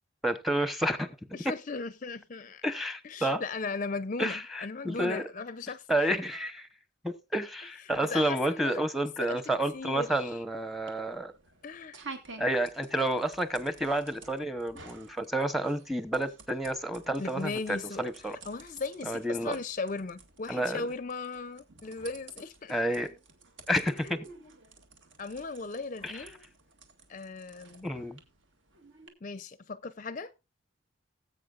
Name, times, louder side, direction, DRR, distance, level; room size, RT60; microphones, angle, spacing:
voice 1, 0.2-1.2 2.6-3.4 4.2-5.2 5.9-6.7 7.0-11.3 12.4-18.4 19.1-19.6 20.5-20.8 22.7-23.1 23.7-24.3 26.0-26.2 27.8-28.2, right 1 dB, ahead, 0.8 m, -30 dB
voice 2, 1.3-2.6 3.0-5.9 7.8-8.8 9.2-9.4 9.7-10.4 11.6-12.0 17.2-18.1 18.5-22.8 24.0-24.5 25.2-26.5 27.1-27.9 29.2-30.3, left 4 dB, 40° left, 0.5 m, -37 dB
sound 1, 9.5-29.1, right 4 dB, 65° right, 2.0 m, -52 dB
19.0 x 8.3 x 2.4 m
head